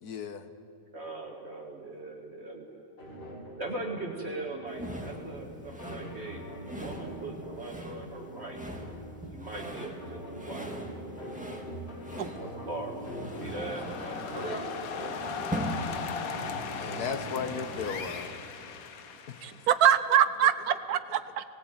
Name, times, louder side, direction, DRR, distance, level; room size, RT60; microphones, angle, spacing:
voice 1, 0.0-0.5 16.8-18.3 19.3-19.4, left 6 dB, 85° left, 10 dB, 1.5 m, -35 dB
voice 2, 0.9-2.9 3.6-8.6 9.3-10.7 12.2-13.0 13.4-14.8, right 2 dB, 45° right, 0 dB, 2.0 m, -40 dB
sound 1, 3.0-18.0, equal, 40° left, 2.6 m, -43 dB
sound 2, 4.7-18.2, equal, 5° right, 1.8 m, -41 dB
sound 3, 13.1-19.9, left 6 dB, 70° left, 1.5 m, -38 dB
voice 3, 19.4-21.4, right 9 dB, 80° right, 13 dB, 1.3 m, -24 dB
18.5 x 18.5 x 9.0 m, 2.5 s
omnidirectional pair, 1.6 m